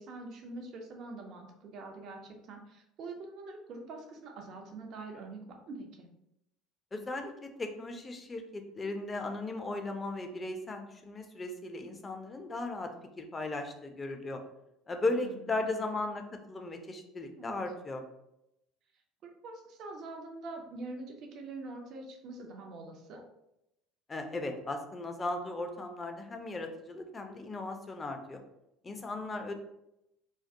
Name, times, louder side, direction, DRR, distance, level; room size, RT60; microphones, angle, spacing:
voice 1, 0.0-6.1 15.2-15.9 17.4-17.6 19.2-23.2, right 3 dB, 50° right, 3 dB, 0.5 m, -44 dB
voice 2, 6.9-12.9 13.2-14.4 14.9-18.0 24.1-28.4 28.8-29.5, left 2 dB, 25° left, 5 dB, 0.4 m, -37 dB
2.2 x 2.1 x 2.6 m, 0.84 s
figure-of-eight pair, 65°, 0 cm